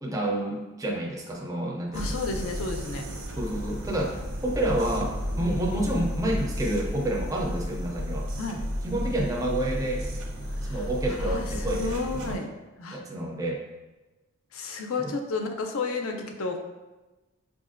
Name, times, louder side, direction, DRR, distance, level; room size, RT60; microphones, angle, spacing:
voice 1, 0.0-2.2 3.4-8.3 8.8-10.1 10.7-12.4 12.9-13.6 15.0-15.2, right 1 dB, 15° right, -1 dB, 0.4 m, -29 dB
voice 2, 1.9-3.1 8.4-8.6 10.6-13.0 14.5-16.6, left 3 dB, 70° left, 4 dB, 0.5 m, -32 dB
sound 1, 1.9-12.4, equal, 80° right, 0.8 m, -33 dB
6.3 x 2.5 x 2.5 m, 1.1 s
head